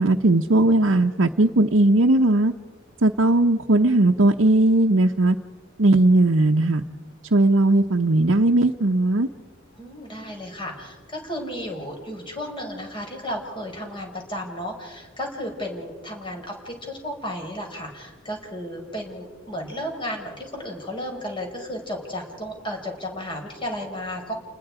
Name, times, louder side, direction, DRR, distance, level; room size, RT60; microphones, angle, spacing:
voice 1, 0.0-2.5 3.0-5.4 5.8-6.8 7.3-9.3, right 2 dB, 75° right, 1 dB, 0.9 m, -18 dB
voice 2, 9.8-24.3, equal, 25° left, 1 dB, 5.6 m, -33 dB
30.0 x 20.5 x 5.0 m, 1.3 s
head